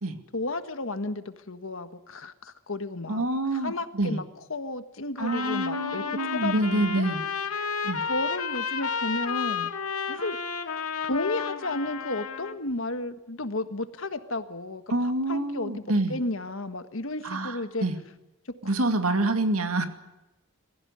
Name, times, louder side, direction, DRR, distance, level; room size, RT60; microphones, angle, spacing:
voice 1, 0.3-3.3 3.5-4.2 4.5-7.1 8.0-9.7 10.1-10.4 11.1-15.8 16.1-17.9, left 2 dB, 65° left, 10 dB, 1.5 m, -33 dB
voice 2, 3.1-4.2 5.2-7.2 7.8-8.0 14.9-16.2 17.2-17.9 18.6-19.8, right 2 dB, 80° right, 7 dB, 2.4 m, -27 dB
Trumpet, 5.2-12.6, left 6 dB, 85° left, 2.0 m, -32 dB
23.0 x 15.0 x 9.9 m, 1.0 s
head